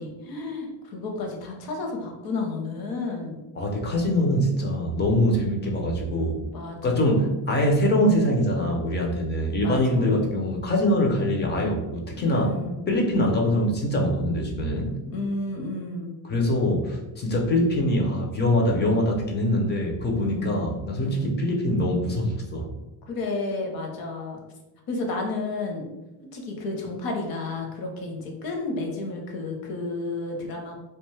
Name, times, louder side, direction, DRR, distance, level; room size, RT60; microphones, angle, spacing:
voice 1, 0.0-3.4 6.5-7.3 9.6-10.1 12.2-12.9 15.1-16.1 20.2-20.6 21.0-21.3 23.1-24.4 24.9-25.8 26.3-30.8, left 3 dB, 55° left, 1 dB, 0.7 m, -32 dB
voice 2, 3.6-6.4 6.8-12.5 12.9-14.9 16.3-22.7, left 1 dB, 25° left, 0 dB, 0.4 m, -23 dB
2.4 x 2.2 x 3.1 m, 1.0 s
cardioid pair, 145°, 42 cm